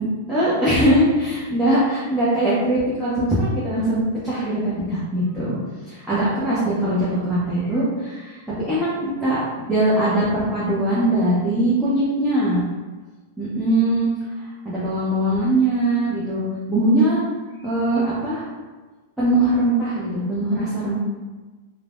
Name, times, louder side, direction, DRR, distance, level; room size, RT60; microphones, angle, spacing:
voice 1, 0.0-5.6 5.9-8.4 8.7-9.4 9.7-12.6 13.4-14.1 14.4-17.2 17.6-18.5 19.2-21.0, right 1 dB, 10° right, -11 dB, 0.8 m, -21 dB
3.1 x 2.1 x 2.5 m, 1.3 s
hypercardioid pair, 115°, 0 cm